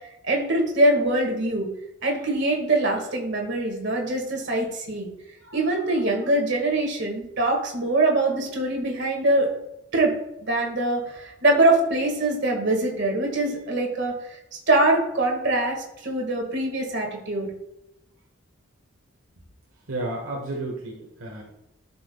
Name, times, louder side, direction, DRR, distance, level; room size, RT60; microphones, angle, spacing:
voice 1, 0.2-1.7 2.0-5.1 5.4-9.5 9.9-10.1 10.4-14.4 14.7-17.5, right 2 dB, 55° right, 0 dB, 1.9 m, -23 dB
voice 2, 19.9-21.4, right 2 dB, 75° right, -2 dB, 1.3 m, -32 dB
12.0 x 5.8 x 2.3 m, 0.85 s
head